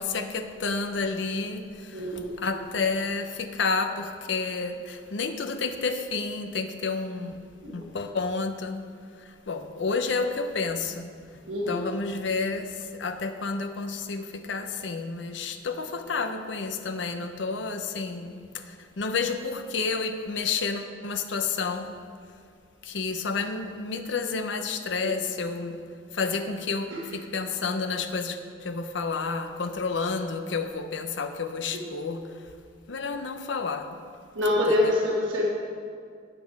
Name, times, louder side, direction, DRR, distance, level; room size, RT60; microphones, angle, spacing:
voice 1, 0.0-8.8 9.2-11.4 11.7-22.0 22.8-25.8 26.1-32.5 32.9-34.0 34.7-34.9, left 4 dB, 70° left, 7 dB, 0.7 m, -30 dB
voice 2, 1.9-2.5 7.6-7.8 11.5-11.9 25.0-25.1 26.9-27.0 34.3-35.5, left 1 dB, 90° right, -3 dB, 1.3 m, -26 dB
9.0 x 8.6 x 4.7 m, 2.3 s
head